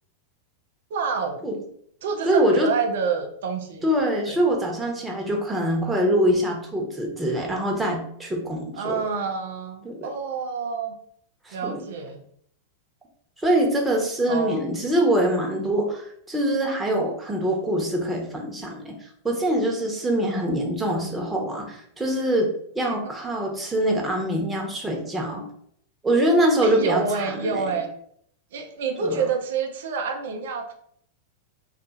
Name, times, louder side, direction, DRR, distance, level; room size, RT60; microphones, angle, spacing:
voice 1, 0.9-1.5 2.0-3.9 4.3-4.4 8.8-11.0 11.5-12.2 14.3-14.6 23.0-23.1 26.6-27.9 28.5-30.7, right 5 dB, 65° right, 5 dB, 0.4 m, -28 dB
voice 2, 2.3-2.7 3.8-9.0 9.8-10.1 11.5-11.8 13.4-18.9 19.2-22.5 22.7-25.4 26.0-27.6 29.0-29.2, right 1 dB, 10° right, 0 dB, 0.9 m, -24 dB
2.6 x 2.4 x 3.9 m, 0.66 s
hypercardioid pair, 95°, 0 cm